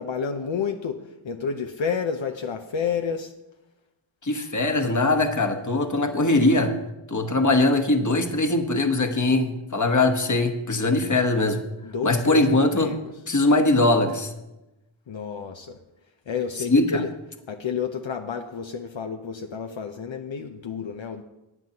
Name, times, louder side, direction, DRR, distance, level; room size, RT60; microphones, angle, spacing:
voice 1, 0.0-3.3 11.8-13.0 15.1-15.8 16.3-17.1 17.5-21.2, left 6 dB, 70° left, 4 dB, 0.8 m, -30 dB
voice 2, 4.2-6.7 7.1-11.6 12.0-12.9 13.3-14.3 16.7-16.8, left 2 dB, 35° left, 6 dB, 1.2 m, -21 dB
17.0 x 9.3 x 2.9 m, 0.97 s
wide cardioid pair, 70°, 48 cm